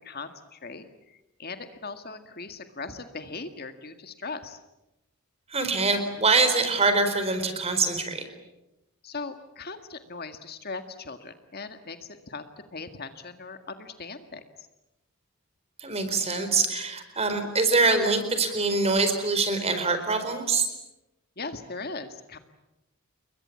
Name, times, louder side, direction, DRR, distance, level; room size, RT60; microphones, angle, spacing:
voice 1, 0.0-4.6 9.0-12.5 12.7-14.7 21.4-22.4, left 4 dB, 45° left, 8 dB, 1.9 m, -39 dB
voice 2, 5.5-8.2 15.8-20.7, right 3 dB, 30° right, 8 dB, 4.3 m, -24 dB
30.0 x 22.5 x 8.5 m, 0.95 s
head